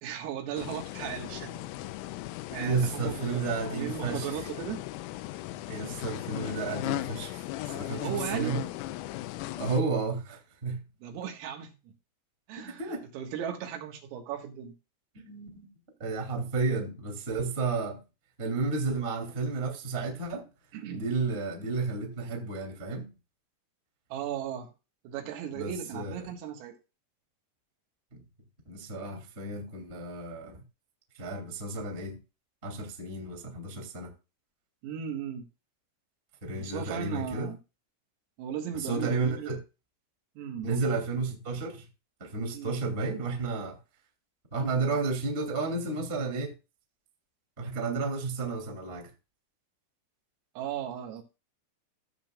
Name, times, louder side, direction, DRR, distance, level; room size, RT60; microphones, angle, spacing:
voice 1, 0.0-1.7 2.5-4.8 8.0-8.5 11.0-11.9 12.5-14.8 20.7-21.1 24.1-24.7 25.1-26.8 34.8-35.5 36.6-37.6 38.4-39.5 40.4-40.8 42.5-42.8 50.6-51.2, right 9 dB, 80° right, 4.3 m, -36 dB
sound 1, 0.6-9.8, left 16 dB, 90° left, 3.3 m, -37 dB
voice 2, 2.6-4.3 5.7-7.4 7.7-8.6 9.6-10.8 12.8-13.0 15.1-15.7 16.0-18.0 18.4-20.5 20.9-23.1 25.5-26.3 28.1-28.2 28.6-30.6 31.2-32.2 32.6-34.1 36.4-37.5 38.7-39.6 40.6-41.8 42.2-43.8 44.5-46.5 47.6-49.1, right 4 dB, 20° right, 1.7 m, -32 dB
16.0 x 7.5 x 2.4 m
omnidirectional pair, 5.9 m